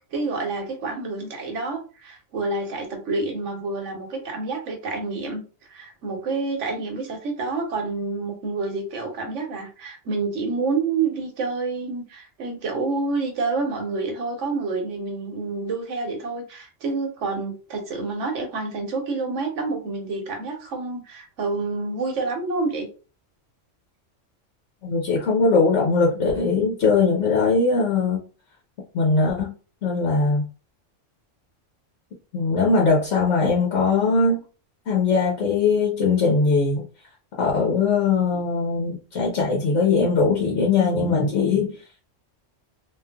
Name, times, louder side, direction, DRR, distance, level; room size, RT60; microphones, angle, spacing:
voice 1, 0.1-5.4 5.7-22.9 38.3-38.4, right 3 dB, 75° right, 3 dB, 1.2 m, -28 dB
voice 2, 24.8-28.2 28.9-29.5 29.8-30.4 32.3-34.4 34.9-36.8 37.4-41.8, left 4 dB, 70° left, -2 dB, 1.1 m, -20 dB
3.1 x 2.6 x 2.2 m, 0.35 s
omnidirectional pair, 1.3 m